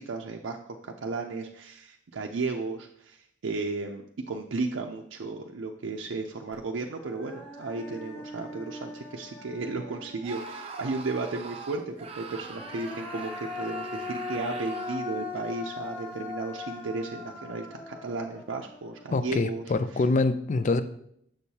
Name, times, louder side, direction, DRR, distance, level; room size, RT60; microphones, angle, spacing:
voice 1, 0.0-4.0 4.3-19.6 19.9-20.0, right 3 dB, 75° right, 2 dB, 0.5 m, -34 dB
Human voice, 6.5-6.6 7.0-10.6 12.3-19.6, left 3 dB, 10° left, 0.8 m, -40 dB
Screaming, 10.2-15.1, right 4 dB, 30° right, 0.6 m, -42 dB
voice 2, 19.1-20.8, left 3 dB, 40° left, 11 dB, 0.4 m, -25 dB
6.4 x 6.3 x 2.8 m, 0.70 s
head